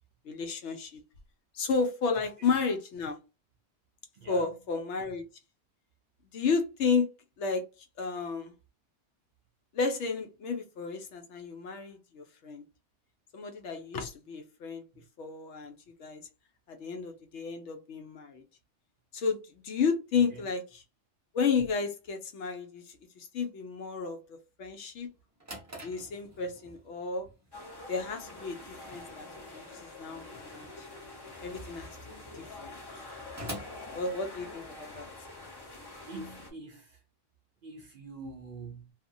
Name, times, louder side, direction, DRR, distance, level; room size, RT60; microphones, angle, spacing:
voice 1, 0.2-1.0 1.5-3.2 4.3-5.2 6.3-7.1 7.4-7.6 8.0-8.5 9.7-12.6 13.3-14.8 15.2-15.7 16.0-16.2 16.7-18.4 19.1-20.8 21.3-22.8 23.2-25.1 25.8-27.3 27.9-29.3 29.5-30.9 31.4-31.9 32.3-32.8 33.9-35.1, left 5 dB, 70° left, 0.9 m, -32 dB
voice 2, 4.1-4.5 14.9-15.0 20.3-20.4 36.1-37.0 37.6-38.9, right 3 dB, 60° right, 0.6 m, -45 dB
Drawer open or close, 25.1-34.8, right 1 dB, 15° right, 0.7 m, -48 dB
sound 1, 27.5-36.5, left 2 dB, 25° left, 0.5 m, -46 dB
2.8 x 2.4 x 2.5 m
omnidirectional pair, 1.3 m